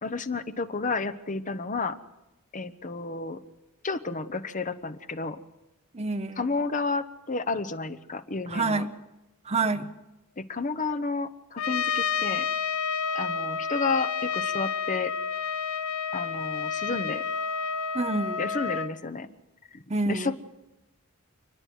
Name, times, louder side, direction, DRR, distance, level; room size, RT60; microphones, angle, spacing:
voice 1, 0.0-2.0 2.5-3.4 3.8-5.4 6.4-8.8 10.4-12.5 13.1-15.1 16.1-17.2 18.4-19.3 19.7-19.8 20.1-20.4, left 3 dB, 35° left, 11 dB, 1.0 m, -31 dB
voice 2, 5.9-6.4 8.5-8.9 9.4-9.9 17.9-18.4 19.9-20.4, right 3 dB, 30° right, 9 dB, 0.8 m, -28 dB
Trumpet, 11.6-18.9, left 6 dB, 75° left, 0.8 m, -30 dB
29.0 x 9.8 x 9.4 m, 1.0 s
head